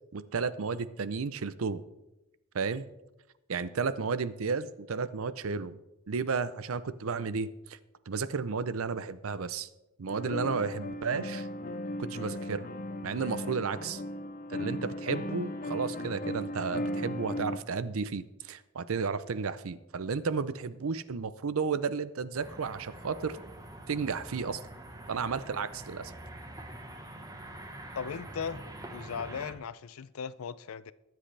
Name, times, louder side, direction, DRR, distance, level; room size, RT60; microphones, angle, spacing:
voice 1, 0.1-1.8 2.5-2.9 3.5-5.8 6.1-7.8 8.1-9.7 10.0-11.5 12.0-12.7 13.0-14.0 14.5-23.4 23.9-24.6 25.1-26.1, right 5 dB, 70° right, 0.6 m, -33 dB
sound 1, 10.1-17.6, left 1 dB, 40° left, 0.7 m, -37 dB
sound 2, 22.3-29.5, right 1 dB, 20° right, 1.2 m, -45 dB
voice 2, 28.0-28.6 28.9-30.9, left 6 dB, 75° left, 0.5 m, -37 dB
21.5 x 7.7 x 3.3 m
head